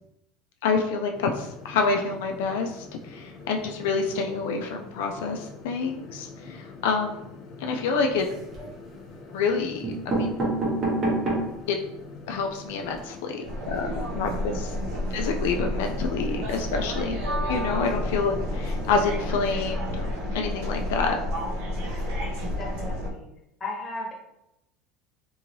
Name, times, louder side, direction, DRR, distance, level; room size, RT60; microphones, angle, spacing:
voice 1, 0.6-7.2 7.6-8.3 9.3-10.3 11.7-11.8 12.3-14.8 15.1-17.2 17.5-20.1 20.3-21.2, left 4 dB, 85° left, 3 dB, 0.3 m, -28 dB
sound 1, 1.1-19.7, left 3 dB, 45° left, 0.6 m, -44 dB
voice 2, 6.3-6.7 8.5-8.7 22.6-23.3 23.6-24.1, left 2 dB, 20° left, -3 dB, 1.1 m, -36 dB
sound 2, 8.1-8.7 9.4-9.5 9.8-11.6 12.1-12.2 12.4-12.5 12.8-13.0, right 2 dB, 30° right, 1.0 m, -27 dB
sound 3, 13.4-23.1, left 1 dB, 75° right, 0.8 m, -30 dB
2.7 x 2.6 x 2.9 m, 0.85 s
supercardioid pair, 135°, 0 cm